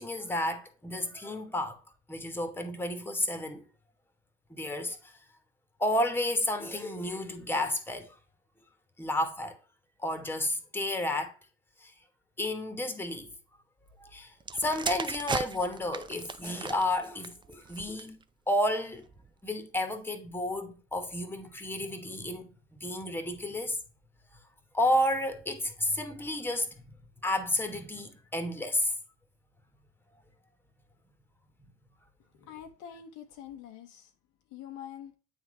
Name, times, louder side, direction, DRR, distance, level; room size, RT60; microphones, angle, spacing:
voice 1, 0.0-1.8 2.1-3.6 4.5-5.1 5.8-8.1 9.0-9.6 10.0-11.3 11.8-11.9 12.4-13.3 14.0-14.3 14.6-18.2 18.5-19.0 19.4-22.5 22.8-23.8 24.7-26.8 27.2-28.9, left 1 dB, 5° left, 1.2 m, -31 dB
sound 1, 14.4-18.2 19.0-19.3, right 5 dB, 15° right, 0.3 m, -38 dB
voice 2, 32.4-34.1 34.5-35.1, left 9 dB, 60° left, 0.8 m, -45 dB
8.8 x 3.7 x 3.1 m
hypercardioid pair, 65°, 34 cm